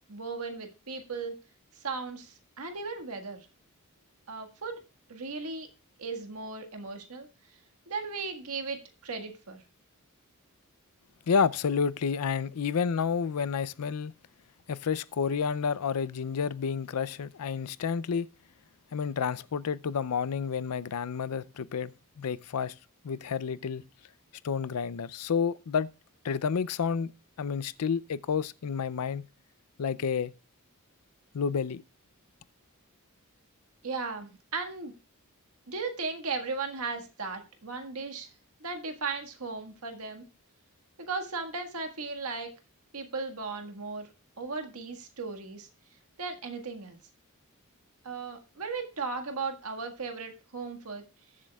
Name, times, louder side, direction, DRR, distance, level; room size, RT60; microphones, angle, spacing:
voice 1, 0.1-1.4 1.8-3.5 4.3-4.8 5.1-5.7 6.0-7.3 7.9-9.6 33.8-34.9 35.7-38.3 38.6-40.2 41.0-42.5 42.9-44.1 44.4-45.7 46.2-47.0 48.0-51.0, right 4 dB, 75° right, 1.7 m, -36 dB
voice 2, 11.3-14.1 14.7-18.3 18.9-22.7 23.0-23.8 24.4-25.9 26.2-27.1 27.4-29.3 29.8-30.3 31.3-31.8, left 6 dB, 85° left, 0.5 m, -30 dB
21.0 x 7.5 x 2.3 m
head